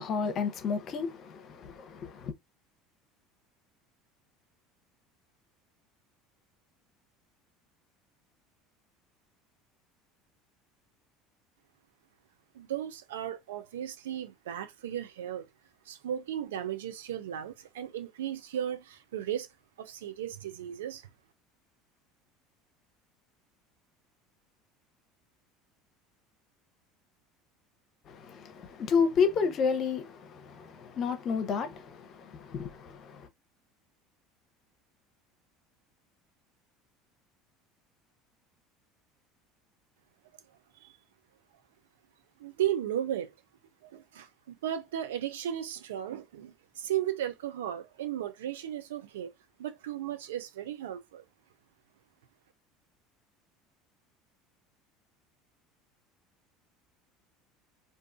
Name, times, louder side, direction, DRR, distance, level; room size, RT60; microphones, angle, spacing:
voice 1, 0.0-2.3 28.1-33.3, left 5 dB, 50° left, 0.7 m, -31 dB
voice 2, 12.5-15.5 15.9-19.5 19.8-21.0 40.8-40.9 42.4-43.3 43.8-49.3 49.6-51.2, right 11 dB, 85° right, 0.4 m, -35 dB
2.5 x 2.3 x 2.5 m
hypercardioid pair, 80°, 0 cm